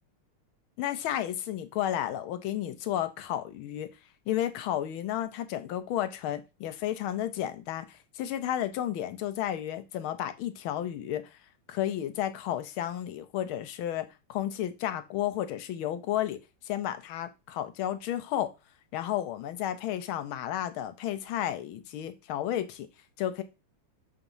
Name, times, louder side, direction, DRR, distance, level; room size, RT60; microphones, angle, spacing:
voice 1, 0.8-3.9 4.3-11.4 11.7-16.4 16.7-18.5 18.9-22.9 23.2-23.4, left 12 dB, 75° left, 1.4 m, -32 dB
7.0 x 3.0 x 5.3 m
omnidirectional pair, 2.4 m